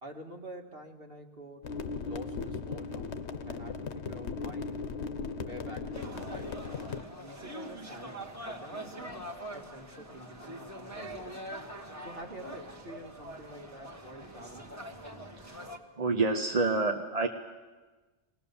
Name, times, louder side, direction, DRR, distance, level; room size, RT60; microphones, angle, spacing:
voice 1, 0.0-1.7 2.0-4.9 5.4-6.6 7.2-9.2 9.5-11.4 12.0-14.7, right 1 dB, 55° right, 3 dB, 2.0 m, -48 dB
sound 1, 1.6-7.0, left 4 dB, 70° left, 1.2 m, -37 dB
sound 2, 5.9-15.8, right 1 dB, 15° right, 1.5 m, -43 dB
voice 2, 16.0-17.3, right 3 dB, 35° right, 2 dB, 0.9 m, -28 dB
22.0 x 19.0 x 7.0 m, 1.3 s
omnidirectional pair, 1.2 m